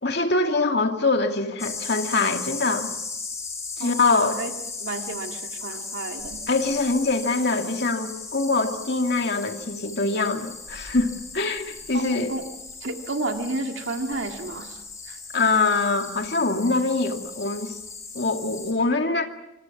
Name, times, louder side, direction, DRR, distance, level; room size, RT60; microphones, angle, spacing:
voice 1, 0.0-2.9 3.8-4.3 6.5-12.3 15.3-17.8 18.1-19.3, left 3 dB, 60° left, 4 dB, 2.4 m, -24 dB
sound 1, 1.6-18.7, left 4 dB, 15° left, 5.6 m, -37 dB
voice 2, 3.8-4.5 4.8-6.5 11.9-12.4 12.8-15.2, right 2 dB, 90° right, 4 dB, 2.0 m, -32 dB
27.0 x 25.5 x 5.9 m, 0.86 s
head